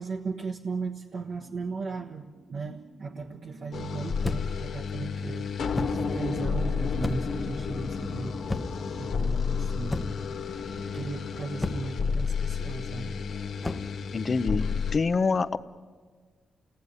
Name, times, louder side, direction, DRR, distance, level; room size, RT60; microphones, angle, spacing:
voice 1, 0.0-5.5 5.8-8.3 9.0-10.1 10.9-13.1, right 4 dB, 55° right, 0 dB, 1.4 m, -36 dB
sound 1, 3.7-15.0, left 5 dB, 80° left, 2.1 m, -31 dB
sound 2, 4.2-4.6 5.7-6.1 7.0-7.4 8.5-8.9 9.9-10.3 11.6-12.0 13.6-13.9, left 2 dB, 15° left, 1.0 m, -32 dB
voice 2, 14.1-15.6, left 4 dB, 40° left, 11 dB, 0.9 m, -26 dB
29.5 x 19.0 x 9.7 m, 1.6 s
cardioid pair, 110°, 0 cm